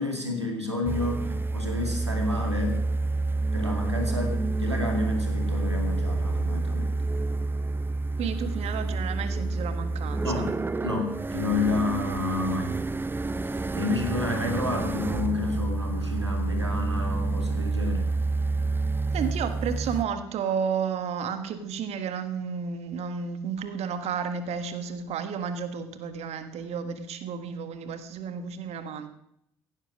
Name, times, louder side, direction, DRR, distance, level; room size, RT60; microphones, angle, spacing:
voice 1, 0.0-2.8 3.5-6.9 10.2-10.5 10.8-12.7 13.4-18.1, left 2 dB, 90° right, 3 dB, 2.3 m, -30 dB
sound 1, 0.9-20.0, right 3 dB, 15° right, 0.7 m, -28 dB
voice 2, 8.2-10.5 19.1-29.1, right 6 dB, 50° right, 9 dB, 1.5 m, -32 dB
15.5 x 11.0 x 6.2 m, 0.76 s
figure-of-eight pair, 55°, 14 cm